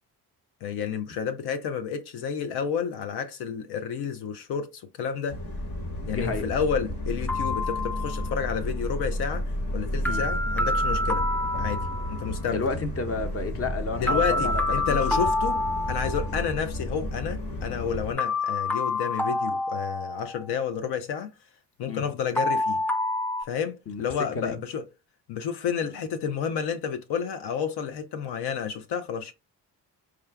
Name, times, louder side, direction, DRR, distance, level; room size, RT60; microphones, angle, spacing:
voice 1, 0.6-5.4 6.0-11.3 11.6-12.6 14.0-15.6 15.9-21.3 21.8-22.8 23.4-24.8 25.3-29.3, left 7 dB, 80° left, 0.5 m, -30 dB
sound 1, 5.3-18.1, left 1 dB, 60° left, 1.3 m, -32 dB
voice 2, 6.1-6.5 10.0-10.3 12.5-15.2 21.9-22.1 23.9-24.0 24.3-24.6, left 3 dB, 35° left, 0.9 m, -31 dB
sound 2, 7.3-8.4 10.1-12.4 14.1-16.4 18.2-20.5 22.4-23.4, left 2 dB, 5° left, 0.4 m, -28 dB
4.7 x 2.2 x 3.4 m
cardioid pair, 65°, 39 cm